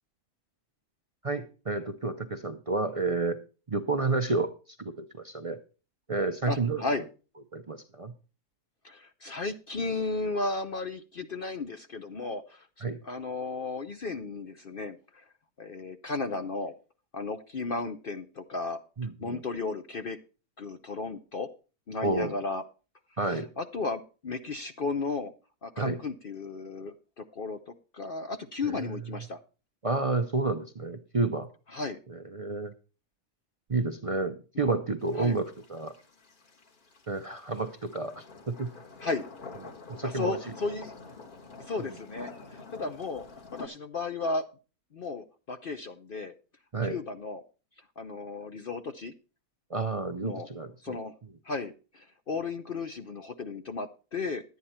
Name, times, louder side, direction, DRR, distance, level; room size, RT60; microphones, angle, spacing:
voice 1, 1.2-3.4 3.7-4.5 4.8-5.6 6.1-6.8 7.5-8.1 12.8-13.0 19.0-19.4 22.0-22.4 23.2-23.5 25.8-26.0 28.7-28.9 29.8-31.5 32.1-32.7 33.7-35.9 37.1-38.7 39.9-40.4 46.7-47.0 49.7-51.0, right 3 dB, 55° right, 7 dB, 0.3 m, -30 dB
voice 2, 6.4-7.0 8.8-12.7 13.0-15.2 15.6-16.7 17.1-18.8 19.2-20.2 20.6-21.5 21.9-22.6 23.3-25.3 25.6-29.4 31.7-32.0 35.2-35.4 39.0-39.3 40.0-40.9 41.6-43.2 43.6-44.4 44.9-46.3 46.8-47.4 48.0-49.1 50.2-50.5 50.8-51.1 51.4-54.4, left 3 dB, 55° left, 8 dB, 0.6 m, -34 dB
sound 1, 35.0-43.7, left 4 dB, 35° left, 1.4 m, -48 dB
11.5 x 9.4 x 4.3 m, 0.34 s
omnidirectional pair, 1.6 m